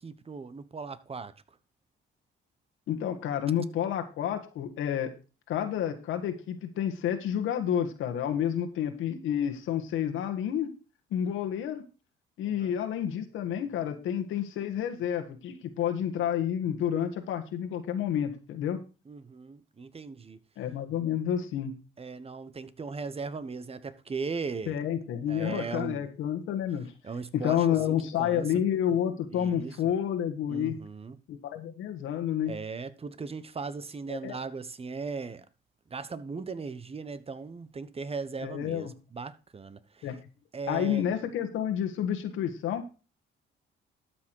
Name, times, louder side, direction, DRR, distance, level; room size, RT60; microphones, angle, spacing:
voice 1, 0.0-1.3 12.6-12.7 19.1-20.4 22.0-24.8 25.3-26.0 27.0-28.5 29.3-29.8 30.5-31.2 32.5-35.4 35.9-40.1 40.5-41.0, right 4 dB, 30° right, 1.1 m, -38 dB
voice 2, 2.9-5.1 5.5-10.7 11.1-11.8 12.4-18.8 20.6-21.7 24.7-26.9 27.3-30.8 31.3-32.5 34.1-34.4 38.4-38.9 40.0-40.1 40.7-42.9, left 9 dB, 85° left, 1.6 m, -30 dB
12.5 x 6.2 x 4.7 m
cardioid pair, 90°, 20 cm